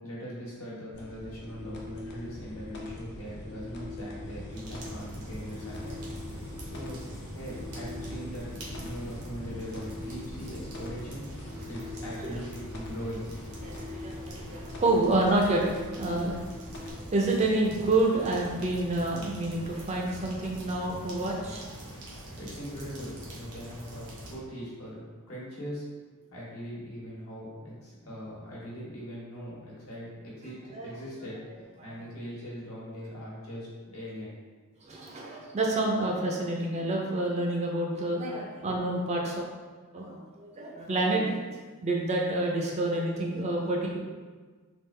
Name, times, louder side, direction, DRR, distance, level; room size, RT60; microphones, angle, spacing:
voice 1, 0.0-6.0 6.7-8.5 8.8-11.2 11.7-13.3 22.0-25.8 26.3-31.4 31.8-33.7 33.9-34.4, equal, 70° left, -6 dB, 1.2 m, -41 dB
sound 1, 0.9-16.9, left 2 dB, 50° left, 0.5 m, -42 dB
sound 2, 4.5-24.4, equal, 90° right, 0.9 m, -43 dB
voice 2, 13.6-16.4 16.8-22.2 30.7-30.9 31.8-32.0 34.8-39.4 39.9-41.3 41.8-44.0, right 2 dB, 30° right, -1 dB, 0.4 m, -28 dB
3.5 x 2.3 x 3.2 m, 1.4 s
head